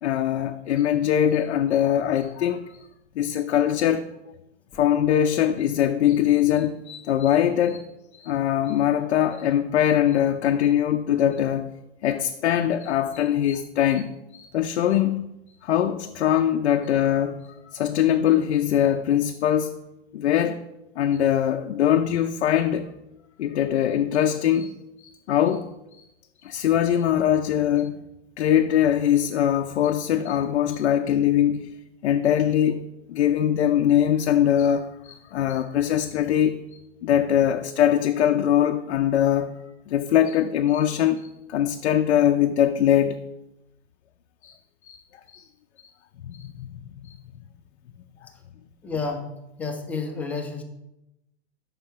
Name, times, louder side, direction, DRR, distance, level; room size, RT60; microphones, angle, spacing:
voice 1, 0.0-2.8 3.2-4.1 4.7-11.7 12.0-15.2 15.6-19.8 20.1-20.6 21.0-22.9 23.4-25.7 25.9-26.0 26.4-28.0 28.4-31.7 32.0-36.6 37.0-43.3 44.4-44.5 44.8-45.0 45.3-45.4 46.2-46.7 47.0-47.1, left 10 dB, 80° left, 0.5 m, -22 dB
voice 2, 48.8-50.6, left 4 dB, 5° left, 0.4 m, -31 dB
5.7 x 4.5 x 5.6 m
hypercardioid pair, 140°, 33 cm